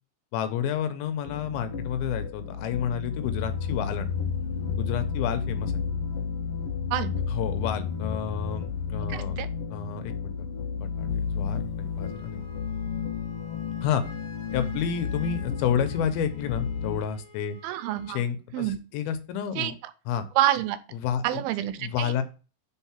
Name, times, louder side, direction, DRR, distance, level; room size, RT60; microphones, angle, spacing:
voice 1, 0.3-4.1 4.8-5.8 7.3-9.4 9.7-10.3 10.8-11.1 11.3-12.4 13.8-14.0 14.5-17.6 18.1-19.7 20.1-20.3 20.9-21.4 21.8-22.2, left 8 dB, 85° left, 9 dB, 2.7 m, -30 dB
sound 1, 1.2-17.0, left 6 dB, 65° left, 1.4 m, -32 dB
voice 2, 9.1-9.5 17.6-18.2 18.5-18.8 19.6-19.7 20.4-20.8 21.2-22.2, right 13 dB, 85° right, 12 dB, 2.5 m, -27 dB
Wind instrument woodwind instrument, 12.0-18.3, left 1 dB, 20° left, 2.6 m, -50 dB
5.1 x 4.6 x 5.6 m, 0.33 s
omnidirectional pair, 4.3 m